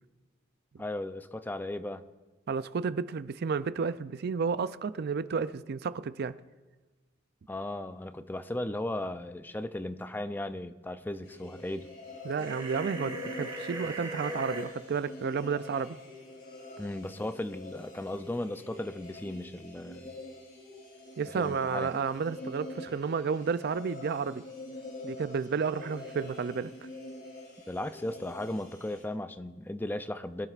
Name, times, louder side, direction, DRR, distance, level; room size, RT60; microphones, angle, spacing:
voice 1, 0.8-2.0 7.5-11.9 16.8-20.2 21.3-21.9 27.7-30.5, left 1 dB, 10° left, 0.4 m, -36 dB
voice 2, 2.5-6.4 12.2-16.0 21.2-24.4 25.0-26.7, right 5 dB, 55° right, 0.4 m, -31 dB
sound 1, 11.2-29.0, left 1 dB, 45° left, 3.6 m, -46 dB
sound 2, 12.4-14.7, right 2 dB, 25° right, 1.6 m, -38 dB
21.0 x 11.0 x 2.5 m
head